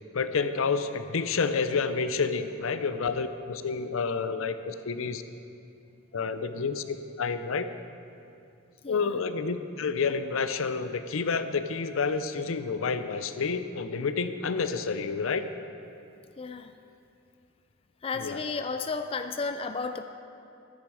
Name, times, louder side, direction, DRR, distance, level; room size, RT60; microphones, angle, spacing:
voice 1, 0.1-5.2 6.1-7.7 8.9-15.5 18.2-18.4, left 5 dB, 80° left, 11 dB, 0.6 m, -29 dB
voice 2, 16.4-16.7 18.0-20.0, left 4 dB, 25° left, 8 dB, 0.3 m, -33 dB
12.0 x 10.5 x 4.8 m, 2.6 s
head